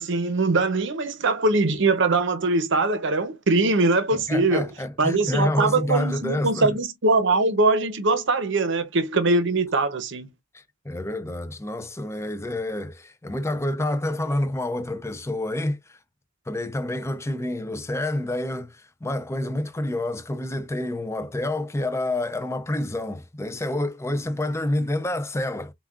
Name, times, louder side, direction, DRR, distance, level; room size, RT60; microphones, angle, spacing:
voice 1, 0.0-4.7 5.0-10.3, right 3 dB, 60° right, 0.9 m, -22 dB
voice 2, 4.1-6.8 10.5-16.0 16.5-25.7, left 1 dB, 15° left, 0.5 m, -28 dB
7.0 x 2.4 x 2.4 m
head